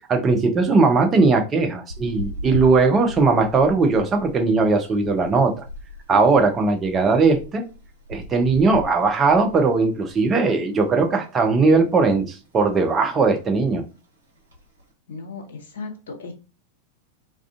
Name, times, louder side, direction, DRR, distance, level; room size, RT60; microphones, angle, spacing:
voice 1, 0.1-5.6 6.1-7.6 8.1-13.8, right 4 dB, 20° right, 0.5 m, -19 dB
sound 1, 1.9-10.4 10.7-10.9 11.3-12.1 12.4-12.8 13.1-13.2 13.3-13.8 14.3-14.8, equal, 70° right, 1.0 m, -37 dB
voice 2, 15.1-16.3, left 4 dB, 60° left, 0.7 m, -36 dB
2.4 x 2.3 x 2.3 m
figure-of-eight pair, 90°, 0 cm